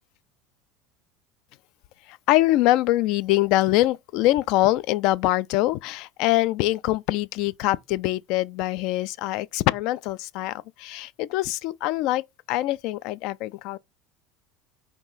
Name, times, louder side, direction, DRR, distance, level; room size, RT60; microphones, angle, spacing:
voice 1, 2.1-13.8, left 16 dB, 65° left, 0.3 m, -24 dB
4.5 x 3.0 x 3.9 m
supercardioid pair, 100°, 0 cm